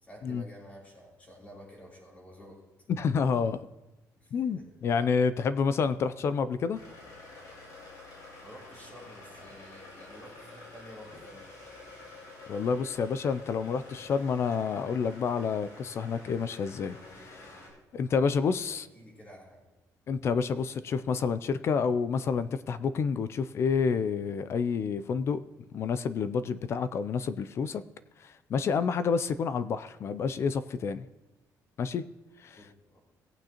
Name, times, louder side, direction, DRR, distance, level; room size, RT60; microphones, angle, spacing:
voice 1, 0.0-2.6 4.1-4.7 8.4-11.5 18.6-19.6 32.6-33.0, equal, 20° left, -3 dB, 3.3 m, -51 dB
voice 2, 2.9-3.6 4.3-6.8 12.5-17.6 17.9-18.9 20.1-25.4 25.7-27.8 28.2-31.0 31.8-32.0 32.4-32.6, left 5 dB, 40° left, 14 dB, 0.4 m, -29 dB
sound 1, 6.7-17.7, left 2 dB, 60° left, 3.7 m, -49 dB
17.5 x 8.8 x 2.9 m, 1.1 s
cardioid pair, 155°, 7 cm